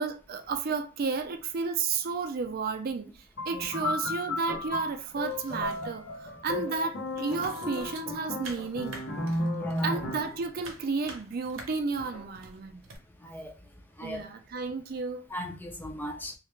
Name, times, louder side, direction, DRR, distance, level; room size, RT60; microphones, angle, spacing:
voice 1, 0.0-3.1 3.5-9.0 9.8-12.8 14.0-15.2, right 4 dB, 50° right, 0.4 m, -32 dB
sound 1, 3.4-10.4, left 2 dB, 55° left, 0.8 m, -34 dB
voice 2, 3.5-3.9 6.6-6.9 9.5-9.9 13.2-13.5 14.0-14.2 15.3-16.3, left 1 dB, 10° left, 0.4 m, -38 dB
Snare drum, 4.5-5.3 5.6-6.1 6.7-7.4 7.8-8.1 8.6-10.7 11.0-11.5 12.0-12.7, equal, 85° left, 0.9 m, -50 dB
sound 2, 5.1-6.2 6.5-13.0, right 3 dB, 75° right, 0.7 m, -48 dB
2.3 x 2.1 x 3.0 m
head